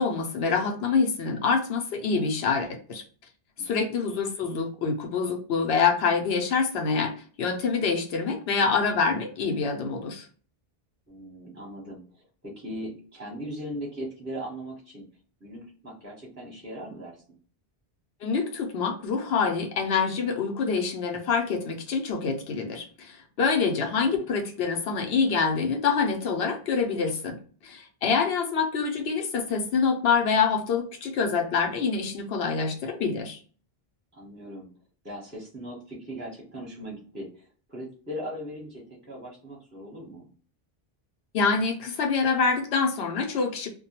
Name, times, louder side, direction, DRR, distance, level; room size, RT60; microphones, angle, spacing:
voice 1, 0.0-3.0 3.6-10.3 18.2-33.4 41.3-43.7, left 5 dB, 75° left, 3 dB, 0.9 m, -26 dB
voice 2, 3.6-3.9 11.1-12.0 12.4-15.1 15.4-17.2 23.8-24.2 34.1-34.7 35.0-40.3, equal, 15° right, -3 dB, 0.8 m, -39 dB
2.2 x 2.2 x 2.8 m, 0.41 s
omnidirectional pair, 1.1 m